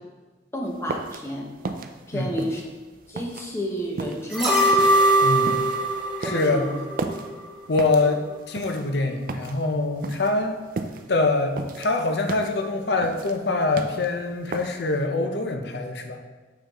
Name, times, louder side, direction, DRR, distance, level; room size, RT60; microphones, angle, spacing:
voice 1, 0.5-1.5 2.1-2.6 3.1-4.6 6.2-6.8, equal, 15° left, 0 dB, 0.7 m, -30 dB
sound 1, 0.7-15.0, right 3 dB, 45° right, 0.4 m, -36 dB
sound 2, 4.3-7.4 7.8-7.9, right 1 dB, 5° right, 1.5 m, -21 dB
voice 2, 5.2-5.7 6.2-6.7 7.7-10.6 11.1-16.2, left 3 dB, 60° left, 5 dB, 0.6 m, -24 dB
7.0 x 5.5 x 3.0 m, 1.3 s
head